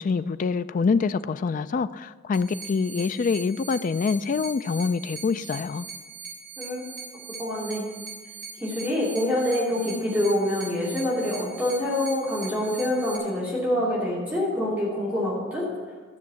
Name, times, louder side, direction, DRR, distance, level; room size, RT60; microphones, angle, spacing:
voice 1, 0.0-5.9, left 5 dB, 40° left, 13 dB, 0.3 m, -25 dB
sound 1, 2.3-13.2, right 5 dB, 55° right, 3.4 m, -41 dB
voice 2, 6.6-6.9 7.4-7.9 8.6-15.7, left 1 dB, 5° right, -8 dB, 2.7 m, -26 dB
13.0 x 6.4 x 7.0 m, 1.5 s
head